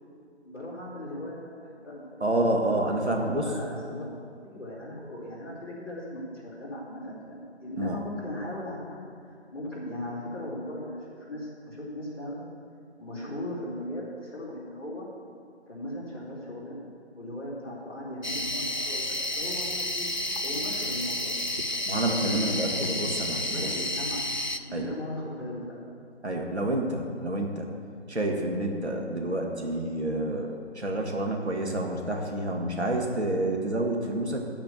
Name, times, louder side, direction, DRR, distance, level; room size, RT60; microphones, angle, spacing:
voice 1, 0.4-2.2 3.1-4.1 4.4-12.5 13.0-15.1 15.7-16.9 17.2-20.0 20.4-21.8 22.0-23.1 23.5-24.3 24.7-25.8, left 1 dB, 20° left, -10 dB, 2.8 m, -38 dB
voice 2, 2.2-3.4 7.8-8.0 21.8-23.7 24.7-24.9 26.2-27.7 28.1-34.4, right 1 dB, 70° right, 1 dB, 1.8 m, -28 dB
sound 1, 18.2-24.6, left 1 dB, 45° left, 0.4 m, -31 dB
14.0 x 5.0 x 8.1 m, 2.5 s
figure-of-eight pair, 160°, 35 cm